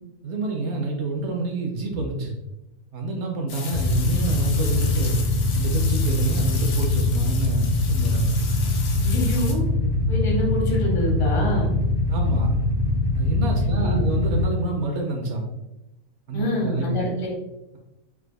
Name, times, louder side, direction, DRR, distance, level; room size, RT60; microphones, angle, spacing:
voice 1, 0.2-2.3 2.9-5.2 5.5-8.3 12.1-12.6 13.1-15.5 16.3-17.1, right 2 dB, 65° right, 1 dB, 0.8 m, -28 dB
sound 1, 3.5-9.5, left 5 dB, 90° left, 1.2 m, -36 dB
Motorcycle / Idling, 3.7-14.4, left 2 dB, 60° left, 1.1 m, -22 dB
voice 2, 9.0-9.6 10.1-11.7 13.6-14.0 16.3-17.3, left 1 dB, 25° left, -3 dB, 0.8 m, -26 dB
4.6 x 2.4 x 2.2 m, 0.95 s
omnidirectional pair, 1.5 m